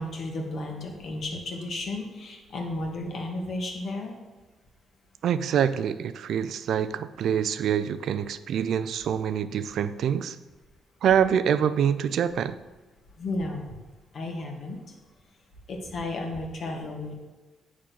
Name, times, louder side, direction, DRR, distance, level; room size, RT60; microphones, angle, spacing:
voice 1, 0.0-4.1 13.2-13.8 14.1-14.8 15.7-17.1, left 2 dB, 55° left, 2 dB, 1.6 m, -33 dB
voice 2, 5.2-10.4 11.0-12.6, right 8 dB, 70° right, 13 dB, 0.3 m, -25 dB
8.4 x 3.8 x 6.0 m, 1.2 s
cardioid pair, 90°, 0 cm